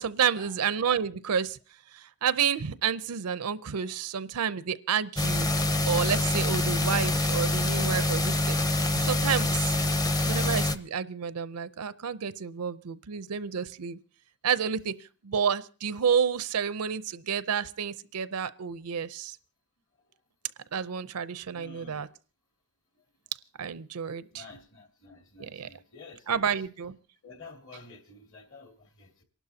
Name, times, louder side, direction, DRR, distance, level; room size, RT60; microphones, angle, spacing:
voice 1, 0.0-1.6 1.9-5.5 5.9-9.8 10.3-14.0 14.4-15.0 15.2-19.4 20.7-22.1 23.6-24.4 25.4-25.7 26.3-27.0, right 7 dB, 85° right, 0.6 m, -30 dB
sound 1, 5.2-10.8, left 2 dB, 15° left, 0.6 m, -26 dB
voice 2, 21.3-22.1 23.0-23.1 24.2-26.4 27.2-29.2, left 3 dB, 60° left, 2.3 m, -50 dB
27.5 x 12.0 x 2.8 m
head